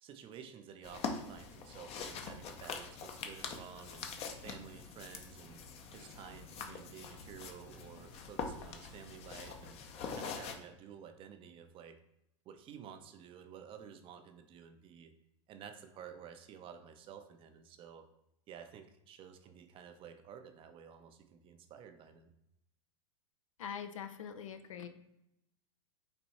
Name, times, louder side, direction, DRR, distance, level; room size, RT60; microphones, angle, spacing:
voice 1, 0.0-4.1 4.4-5.6 5.9-9.8 10.1-12.0 12.5-15.1 15.5-18.1 18.5-22.3, right 8 dB, 35° right, 8 dB, 0.5 m, -52 dB
sound 1, 0.8-10.5, left 5 dB, 40° left, 0.7 m, -44 dB
voice 2, 23.6-24.9, left 8 dB, 85° left, 9 dB, 0.6 m, -43 dB
4.2 x 2.7 x 4.3 m, 0.81 s
hypercardioid pair, 110°, 16 cm